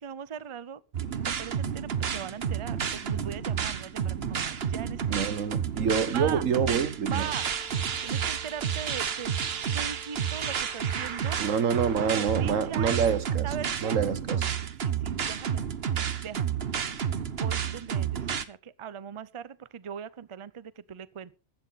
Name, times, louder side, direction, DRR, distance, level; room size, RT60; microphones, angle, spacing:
voice 1, 0.0-5.2 6.1-6.5 7.1-7.5 8.0-9.4 9.7-11.4 12.1-13.0 13.4-15.6 15.9-16.6 17.4-21.3, right 8 dB, 35° right, 0.5 m, -40 dB
sound 1, 0.9-18.4, right 8 dB, 55° right, 1.1 m, -30 dB
Dog / Motorcycle, 4.2-9.2, left 2 dB, 55° left, 4.0 m, -55 dB
voice 2, 5.1-7.3 11.4-13.5 13.8-14.5, right 6 dB, 85° right, 1.5 m, -27 dB
Wind instrument woodwind instrument, 7.1-12.2, equal, 5° right, 2.7 m, -52 dB
15.0 x 12.5 x 4.1 m
omnidirectional pair, 1.3 m